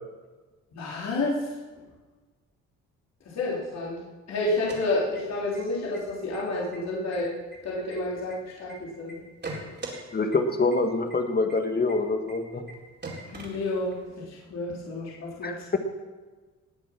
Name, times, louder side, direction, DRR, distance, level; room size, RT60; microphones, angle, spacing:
voice 1, 0.7-1.4 3.3-4.0 4.3-7.3 7.6-9.2 13.3-15.6, left 2 dB, 60° left, -6 dB, 3.8 m, -30 dB
sound 1, 4.5-5.6 5.9-6.0 6.3-6.8 7.1-8.7 9.1-10.0 10.3-10.4 10.7-10.8 11.1-11.2 11.5-11.6 11.9-12.0 12.3-12.4 12.7-12.8 13.0-14.1, right 2 dB, 35° right, 4.3 m, -40 dB
voice 2, 10.1-12.6 15.4-15.8, left 3 dB, 30° left, 6 dB, 1.9 m, -25 dB
19.5 x 7.7 x 6.1 m, 1.3 s
cardioid pair, 90°, 30 cm